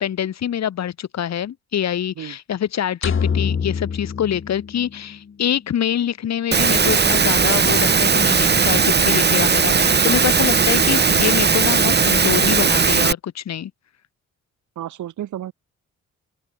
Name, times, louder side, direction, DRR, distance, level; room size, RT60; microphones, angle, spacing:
voice 1, 0.0-13.7, left 10 dB, 60° left, 3.3 m, -25 dB
sound 1, 3.0-5.3, left 6 dB, 40° left, 4.0 m, -25 dB
Engine / Mechanisms, 6.5-13.1, right 5 dB, 35° right, 2.4 m, -17 dB
voice 2, 14.8-15.5, right 12 dB, 75° right, 7.5 m, -31 dB
open air
cardioid pair, 90°, 30 cm